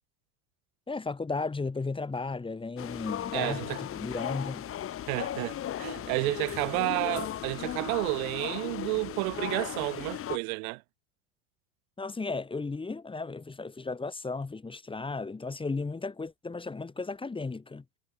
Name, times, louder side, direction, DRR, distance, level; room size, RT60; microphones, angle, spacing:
voice 1, 0.9-4.7 12.0-17.8, left 3 dB, 10° left, 2.1 m, -35 dB
sound 1, 2.8-10.4, left 11 dB, 30° left, 1.5 m, -36 dB
voice 2, 3.3-3.8 5.1-10.8, right 30 dB, 70° right, 1.8 m, -31 dB
supercardioid pair, 130°, 45 cm